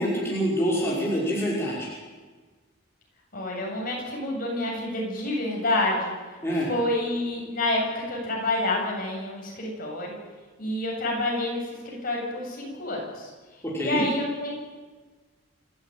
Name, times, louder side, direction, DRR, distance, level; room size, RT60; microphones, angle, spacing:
voice 1, 0.0-1.9 6.4-6.7 13.6-14.0, equal, 10° left, -6 dB, 5.7 m, -26 dB
voice 2, 3.3-6.1 6.7-10.2 10.6-13.3 13.8-14.5, left 1 dB, 45° left, -1 dB, 8.0 m, -28 dB
28.0 x 15.5 x 9.2 m, 1.4 s
head